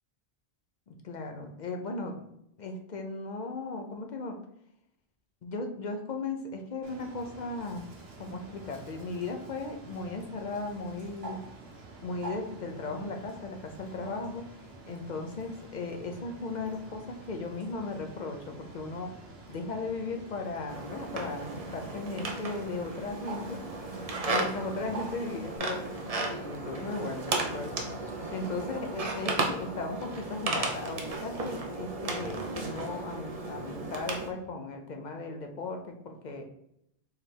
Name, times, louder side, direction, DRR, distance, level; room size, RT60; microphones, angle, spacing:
voice 1, 0.9-2.3 2.6-4.4 5.4-7.9 8.2-11.4 12.0-14.4 14.8-19.1 19.5-23.6 24.3-36.5, left 3 dB, 50° left, 4 dB, 0.6 m, -37 dB
Bird, 6.8-25.6, right 3 dB, 65° right, 1.1 m, -48 dB
sound 1, 20.7-34.3, right 2 dB, 40° right, 0.6 m, -35 dB
4.6 x 3.3 x 3.3 m, 0.77 s
omnidirectional pair, 1.1 m